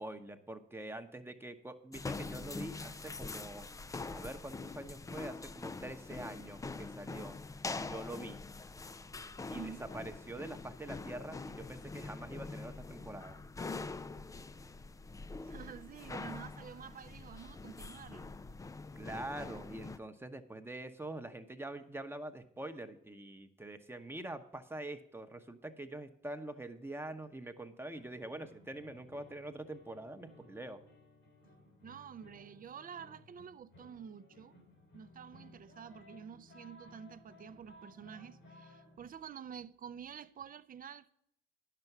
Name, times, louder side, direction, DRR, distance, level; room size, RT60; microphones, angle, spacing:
voice 1, 0.0-3.7 4.1-7.4 7.7-8.4 9.5-13.4 19.0-30.8, right 1 dB, 10° right, 0.9 m, -45 dB
sound 1, 1.9-20.0, left 3 dB, 15° left, 0.4 m, -44 dB
voice 2, 9.5-9.9 15.4-18.3 31.8-34.6 34.9-41.1, right 7 dB, 45° right, 0.6 m, -49 dB
sound 2, 27.9-39.1, left 1 dB, 80° left, 3.1 m, -59 dB
10.5 x 6.8 x 5.9 m
cardioid pair, 90°, 20 cm